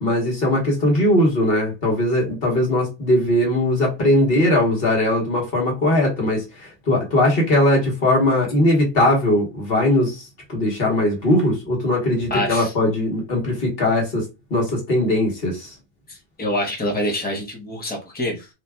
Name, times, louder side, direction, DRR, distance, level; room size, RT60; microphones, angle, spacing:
voice 1, 0.0-14.2 14.5-15.7, left 1 dB, 60° left, 1.5 m, -20 dB
voice 2, 12.3-12.7 16.1-18.5, left 1 dB, 10° left, 1.1 m, -26 dB
4.5 x 2.3 x 3.5 m
omnidirectional pair, 1.1 m